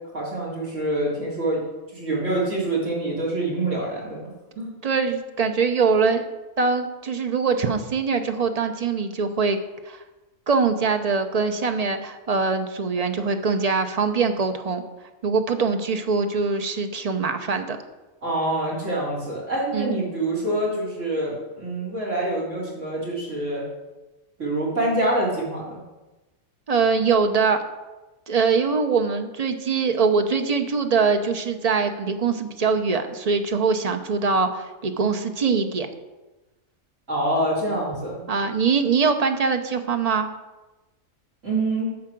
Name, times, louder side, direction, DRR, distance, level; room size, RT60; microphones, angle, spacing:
voice 1, 0.1-1.6 1.9-4.2 4.6-4.7 18.2-23.6 24.4-25.8 37.1-38.2 41.4-41.9, right 1 dB, 60° right, -3 dB, 3.7 m, -26 dB
voice 2, 4.8-6.2 6.6-9.6 9.9-10.0 10.5-14.8 15.2-17.8 19.7-19.9 26.7-27.6 28.3-35.9 38.3-40.3, right 5 dB, 35° right, 7 dB, 0.6 m, -23 dB
10.5 x 4.8 x 7.6 m, 1.1 s
omnidirectional pair, 1.5 m